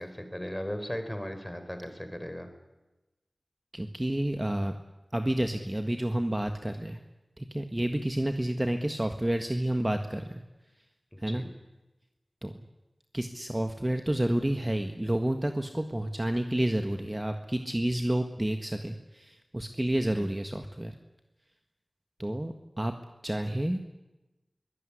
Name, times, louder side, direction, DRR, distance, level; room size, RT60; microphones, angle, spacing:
voice 1, 0.0-2.5 11.1-11.5 20.1-20.3, equal, 10° left, 7 dB, 4.3 m, -37 dB
voice 2, 3.7-4.8 5.1-7.0 7.4-10.4 11.2-11.4 12.4-12.5 13.1-20.9 22.2-22.9 23.2-23.8, right 1 dB, 20° right, 6 dB, 1.6 m, -30 dB
23.0 x 18.0 x 10.0 m, 1.0 s
wide cardioid pair, 70°, 0 cm